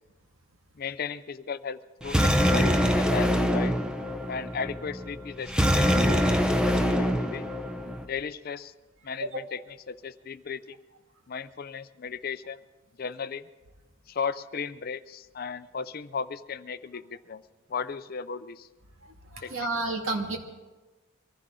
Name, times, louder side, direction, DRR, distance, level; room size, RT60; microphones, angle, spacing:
voice 1, 0.8-3.7 4.3-6.2 6.6-7.5 8.0-8.7 9.0-9.6 9.9-10.8 11.3-12.6 13.0-13.4 14.1-17.4 17.7-18.7 19.4-19.7, left 5 dB, 45° left, 13 dB, 0.5 m, -35 dB
sound 1, 2.0-8.0, equal, 5° right, 0.7 m, -24 dB
voice 2, 19.3-20.4, right 2 dB, 70° right, 3 dB, 2.1 m, -30 dB
24.0 x 15.0 x 3.8 m, 1.3 s
head